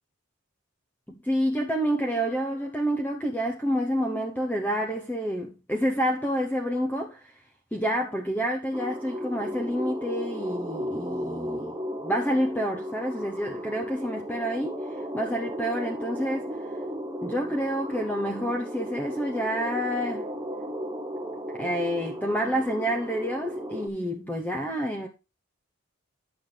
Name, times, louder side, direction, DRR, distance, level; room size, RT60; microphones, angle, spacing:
voice 1, 1.1-7.3 7.7-11.7 12.0-16.5 17.2-20.3 21.6-25.1, equal, 10° left, 0.9 m, -28 dB
sound 1, 8.7-23.9, equal, 15° right, 1.0 m, -35 dB
11.0 x 6.3 x 3.3 m
head